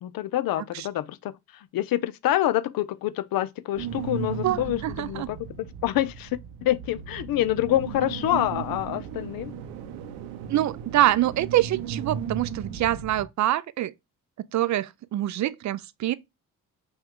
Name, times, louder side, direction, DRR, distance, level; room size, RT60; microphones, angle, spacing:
voice 1, 0.0-9.5, left 13 dB, 60° left, 0.5 m, -27 dB
sound 1, 3.7-13.3, right 7 dB, 85° right, 0.7 m, -36 dB
voice 2, 4.4-5.3 10.5-13.9 14.5-16.1, right 13 dB, 45° right, 0.4 m, -25 dB
6.0 x 2.4 x 3.5 m
supercardioid pair, 60°, 40 cm